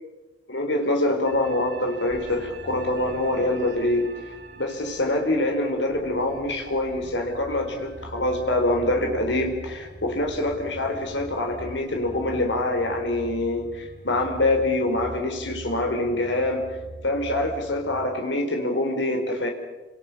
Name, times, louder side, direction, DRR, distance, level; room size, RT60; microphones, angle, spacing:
voice 1, 0.5-4.1 4.6-16.7 17.0-19.5, left 1 dB, 85° left, 3 dB, 4.4 m, -25 dB
sound 1, 1.2-18.1, right 1 dB, 60° right, 3.8 m, -42 dB
30.0 x 26.0 x 5.9 m, 1.2 s
head